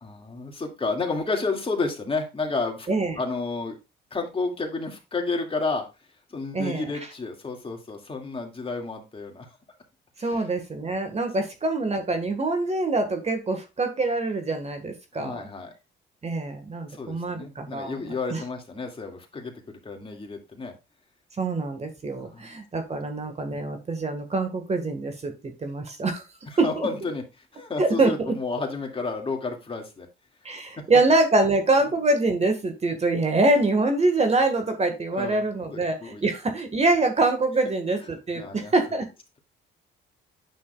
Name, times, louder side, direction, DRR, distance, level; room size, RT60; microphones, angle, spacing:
voice 1, 0.0-2.9 3.2-3.8 4.1-5.8 6.3-9.5 10.2-10.4 15.1-15.7 16.9-20.7 22.2-22.5 26.5-27.2 27.5-30.1 35.1-36.2 38.3-38.7, left 3 dB, 30° left, 2 dB, 2.2 m, -31 dB
voice 2, 2.9-3.2 6.5-6.9 10.2-15.4 16.2-18.0 18.3-18.4 21.4-26.2 26.6-26.9 27.8-28.3 30.4-39.1, right 2 dB, 35° right, 5 dB, 1.6 m, -24 dB
9.1 x 6.2 x 2.4 m, 0.27 s
cardioid pair, 90°, 20 cm